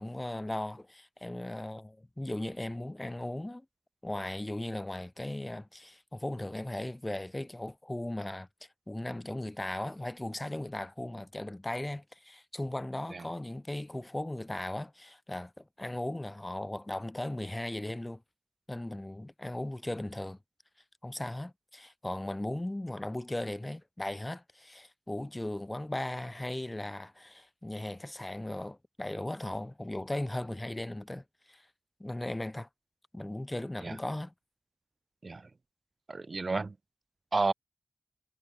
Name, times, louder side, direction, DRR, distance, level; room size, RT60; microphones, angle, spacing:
voice 1, 0.0-3.7 4.0-8.5 8.9-18.2 18.7-20.4 21.0-31.7 32.0-32.7 33.1-34.3, left 1 dB, 20° left, 2.2 m, -37 dB
voice 2, 36.1-36.7 37.3-37.5, right 3 dB, 50° right, 5.1 m, -31 dB
wide cardioid pair, 65°, 0 cm